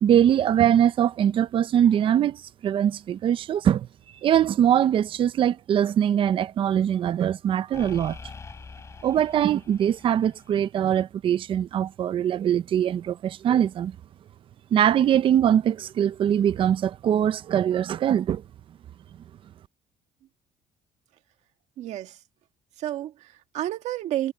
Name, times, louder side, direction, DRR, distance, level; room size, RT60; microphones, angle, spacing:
voice 1, 0.0-3.9 4.2-8.2 9.0-14.0 14.7-18.4, right 10 dB, 50° right, 0.6 m, -22 dB
sound 1, 2.9-3.1 7.7-10.7, left 4 dB, 25° left, 4.9 m, -44 dB
voice 2, 21.8-22.2 22.8-24.3, right 13 dB, 75° right, 1.9 m, -31 dB
cardioid pair, 135°, 12 cm